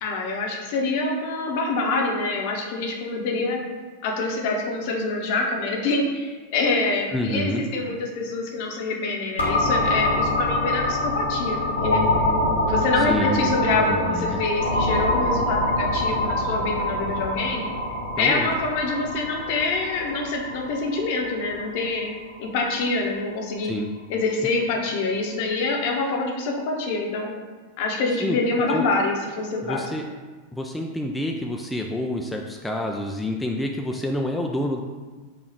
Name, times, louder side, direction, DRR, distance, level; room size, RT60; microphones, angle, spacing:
voice 1, 0.0-3.6 4.0-12.0 12.6-17.6 18.2-22.1 22.4-23.7 24.1-27.3 27.8-29.9, left 3 dB, 50° left, 1 dB, 0.8 m, -26 dB
voice 2, 7.1-7.6 13.0-13.6 13.9-14.4 18.2-18.5 23.6-23.9 28.2-28.4 28.7-28.9 29.6-30.1 30.5-34.8, left 1 dB, 5° left, 1 dB, 0.3 m, -28 dB
sound 1, 9.4-22.9, left 1 dB, 85° left, 1.2 m, -25 dB
5.0 x 2.3 x 4.5 m, 1.4 s
figure-of-eight pair, 90°, 0 cm